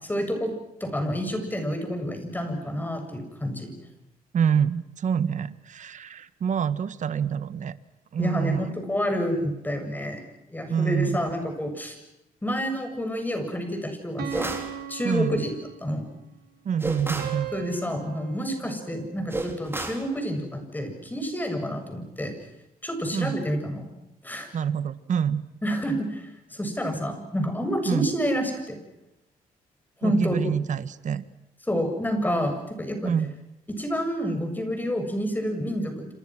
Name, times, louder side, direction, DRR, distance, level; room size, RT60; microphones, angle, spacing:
voice 1, 0.1-0.5 0.8-3.7 8.2-10.2 10.5-12.0 12.4-14.6 14.9-15.5 15.8-16.0 17.5-22.3 22.8-23.8 24.2-24.5 25.6-28.8 30.0-30.6 31.7-33.1 33.7-35.9, equal, 10° left, 5 dB, 7.3 m, -28 dB
voice 2, 4.3-7.8 8.1-8.6 10.7-11.3 15.0-15.4 16.6-17.5 23.1-23.4 24.5-25.4 27.8-28.1 30.0-31.2 33.0-33.3, right 7 dB, 55° right, 14 dB, 1.5 m, -26 dB
sound 1, 14.2-16.1 17.2-19.6, right 9 dB, 80° right, 5.1 m, -38 dB
sound 2, 14.3-14.8 16.8-17.4 19.3-20.1, right 2 dB, 15° right, 4.0 m, -31 dB
29.0 x 27.0 x 6.2 m, 0.86 s
cardioid pair, 110°, 15 cm